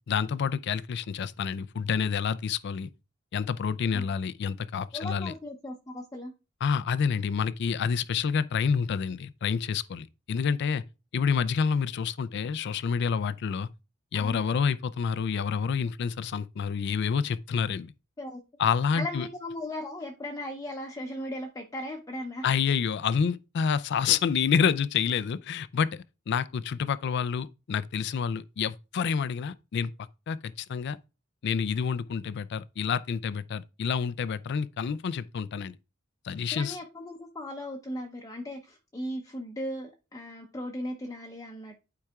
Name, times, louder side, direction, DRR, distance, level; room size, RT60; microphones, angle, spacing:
voice 1, 0.1-2.9 3.3-5.3 6.6-10.8 11.1-13.7 14.1-17.9 18.6-19.3 22.4-29.9 30.3-31.0 31.4-35.8 36.2-36.8, left 6 dB, 55° left, 0.4 m, -28 dB
voice 2, 4.9-6.3 14.1-14.4 18.2-18.4 18.9-22.4 36.5-41.8, left 1 dB, 15° left, 0.7 m, -37 dB
11.5 x 4.7 x 2.3 m
head